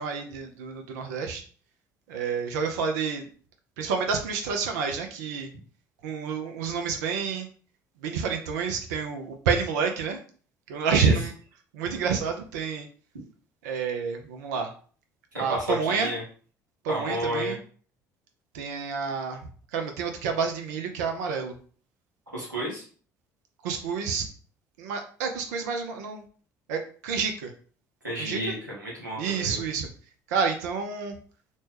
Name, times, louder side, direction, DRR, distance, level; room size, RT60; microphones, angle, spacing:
voice 1, 0.0-1.4 2.1-3.3 3.8-5.5 6.0-7.5 8.0-10.2 10.7-11.3 11.7-12.9 13.6-14.7 15.4-16.1 16.8-17.6 18.5-19.4 19.7-21.6 23.6-24.3 24.8-26.2 26.7-27.5 28.2-28.4 29.2-29.9 30.3-31.1, right 5 dB, 65° right, 4 dB, 0.5 m, -29 dB
voice 2, 15.3-16.2 16.9-17.6 22.3-22.8 28.0-29.6, equal, 85° right, -5 dB, 1.0 m, -31 dB
3.1 x 2.2 x 3.1 m, 0.43 s
figure-of-eight pair, 55°, 10 cm